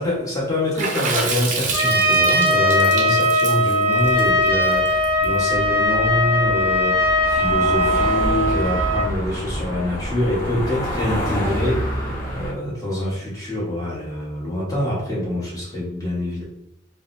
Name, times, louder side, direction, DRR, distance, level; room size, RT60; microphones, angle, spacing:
voice 1, 0.0-12.0 12.3-16.4, left 1 dB, 20° left, -6 dB, 1.2 m, -25 dB
Water / Splash splatter, 0.8-5.2, right 4 dB, 40° right, 0.5 m, -28 dB
Trumpet, 1.7-9.1, equal, 15° right, 0.8 m, -19 dB
sound 1, 3.9-12.5, equal, 50° left, 0.7 m, -28 dB
3.9 x 2.1 x 2.6 m, 0.79 s
head